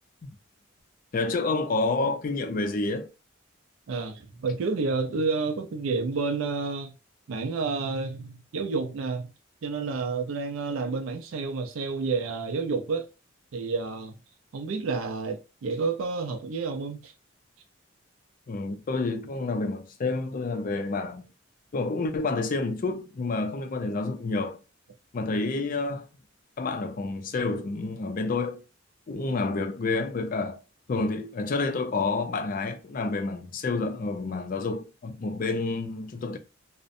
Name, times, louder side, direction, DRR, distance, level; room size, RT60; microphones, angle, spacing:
voice 1, 1.1-3.1 18.5-21.3 21.7-24.6 25.1-26.1 26.6-28.6 29.1-30.6 30.9-36.4, left 3 dB, 45° left, 0.4 m, -29 dB
voice 2, 3.9-6.9 7.3-9.3 9.6-13.1 13.5-14.1 14.5-17.1, right 4 dB, 80° right, 0.4 m, -30 dB
2.5 x 2.0 x 2.5 m
head